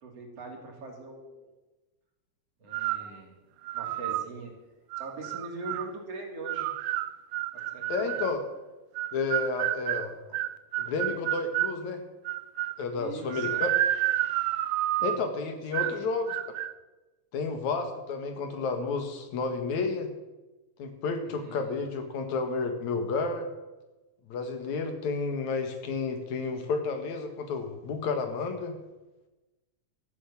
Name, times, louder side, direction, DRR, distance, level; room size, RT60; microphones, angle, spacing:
voice 1, 0.0-1.4 2.6-3.3 3.7-4.5 5.0-6.7 7.5-8.2 13.0-13.7 15.0-15.3 15.7-16.0 21.2-21.6, right 2 dB, 55° right, 1 dB, 4.0 m, -42 dB
sound 1, 2.7-3.1 3.7-4.3 4.9-5.9 6.5-8.4 9.0-11.8 12.3-12.8 13.3-15.3 15.7-16.0 16.3-16.7, right 14 dB, 85° right, 2.0 m, -30 dB
voice 2, 7.9-8.4 9.1-10.2 10.8-12.0 12.8-13.7 15.0-16.3 17.3-20.1 20.8-23.5 24.3-28.7, left 4 dB, 75° left, 6 dB, 3.1 m, -31 dB
14.5 x 8.6 x 8.7 m, 1.1 s
omnidirectional pair, 3.3 m